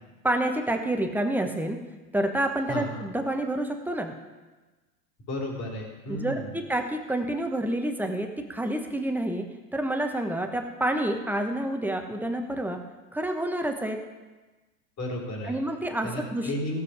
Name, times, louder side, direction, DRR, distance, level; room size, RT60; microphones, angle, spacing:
voice 1, 0.2-1.8 2.1-4.1 6.1-9.4 9.7-12.8 13.1-14.0 15.5-16.5, right 1 dB, 5° right, 4 dB, 1.2 m, -28 dB
voice 2, 5.3-6.6 15.0-15.6 16.0-16.8, left 1 dB, 30° left, -1 dB, 3.7 m, -33 dB
16.0 x 7.6 x 5.0 m, 1.2 s
figure-of-eight pair, 90°, 47 cm